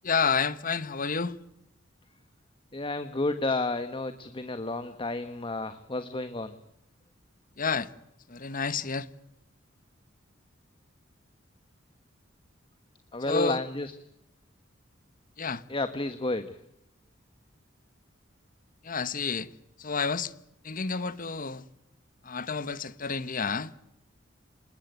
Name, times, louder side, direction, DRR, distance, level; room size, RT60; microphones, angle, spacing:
voice 1, 0.0-1.4 7.6-7.9 8.3-9.1 13.2-13.6 15.4-15.6 18.8-19.5 19.8-20.3 20.6-21.6 22.2-23.7, left 5 dB, 45° left, 1.2 m, -30 dB
voice 2, 2.7-6.5 13.1-13.9 15.7-16.5, left 2 dB, 25° left, 1.3 m, -31 dB
27.5 x 20.5 x 9.2 m
head